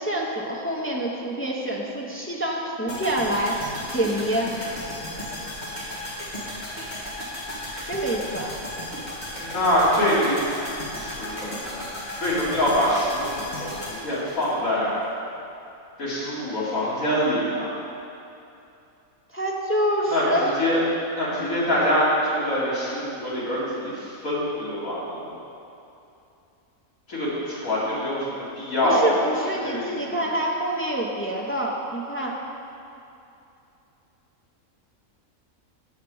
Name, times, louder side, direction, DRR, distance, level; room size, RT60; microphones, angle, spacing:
voice 1, 0.0-3.6 3.9-4.6 7.7-8.5 19.3-20.5 28.8-32.3, right 1 dB, 15° left, -3 dB, 0.5 m, -26 dB
sound 1, 2.9-15.1 15.3-15.4, left 1 dB, 35° left, 1.7 m, -35 dB
voice 2, 9.4-10.4 10.9-11.8 12.1-14.9 16.0-17.7 20.1-20.8 21.1-25.3 27.1-29.2 29.6-30.2, equal, 75° left, -9 dB, 2.8 m, -25 dB
7.4 x 7.3 x 4.7 m, 2.7 s
omnidirectional pair, 1.4 m